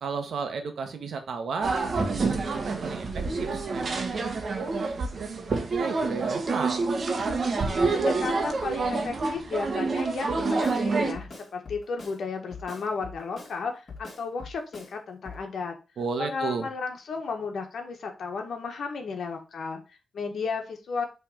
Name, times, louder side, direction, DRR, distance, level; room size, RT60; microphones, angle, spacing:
voice 1, 0.0-6.8 16.0-16.7, right 5 dB, 80° right, 7 dB, 1.1 m, -34 dB
sound 1, 1.6-11.1, right 3 dB, 50° right, 1.1 m, -27 dB
voice 2, 7.9-15.8 16.2-19.8 20.1-21.1, left 4 dB, 75° left, 4 dB, 1.5 m, -34 dB
Drum kit, 10.3-10.8 11.1-12.2 12.5-13.6 13.9-14.9 15.2-15.4, left 4 dB, 45° left, 2.4 m, -43 dB
5.7 x 3.5 x 4.9 m, 0.31 s
wide cardioid pair, 145°, 0 cm